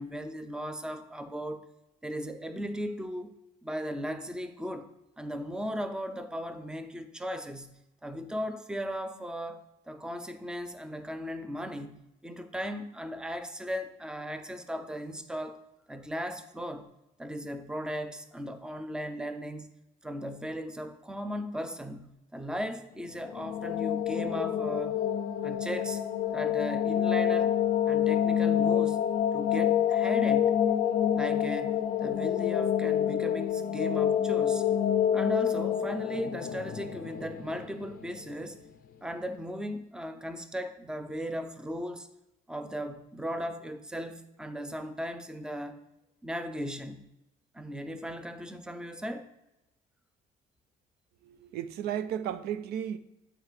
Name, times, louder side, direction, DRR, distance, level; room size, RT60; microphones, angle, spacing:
voice 1, 0.0-1.6 2.0-3.3 3.6-15.6 15.9-16.9 17.2-19.7 20.0-25.0 25.4-26.0 26.3-27.6 27.8-29.0 29.3-30.6 31.1-34.7 35.1-38.6 39.0-42.1 42.5-45.8 46.2-47.1 47.5-49.3, equal, 5° right, 0.5 m, -37 dB
sound 1, 23.1-38.1, left 9 dB, 55° left, 0.4 m, -27 dB
voice 2, 51.2-53.0, right 10 dB, 75° right, 0.4 m, -34 dB
7.7 x 4.5 x 3.2 m
cardioid pair, 110°, 17 cm